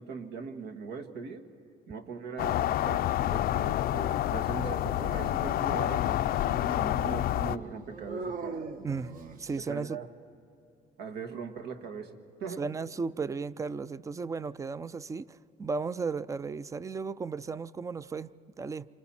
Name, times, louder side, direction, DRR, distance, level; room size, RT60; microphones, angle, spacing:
voice 1, 0.0-1.5 1.9-6.2 6.6-8.7 9.6-10.1 11.0-12.6, right 5 dB, 80° right, 7 dB, 1.5 m, -40 dB
sound 1, 2.4-7.6, left 13 dB, 65° left, 0.5 m, -28 dB
Dog, 4.6-9.7, right 4 dB, 55° right, 1.1 m, -42 dB
voice 2, 9.4-10.0 12.6-18.9, right 4 dB, 20° right, 18 dB, 0.4 m, -35 dB
28.5 x 25.5 x 4.3 m, 2.8 s
cardioid pair, 110°, 17 cm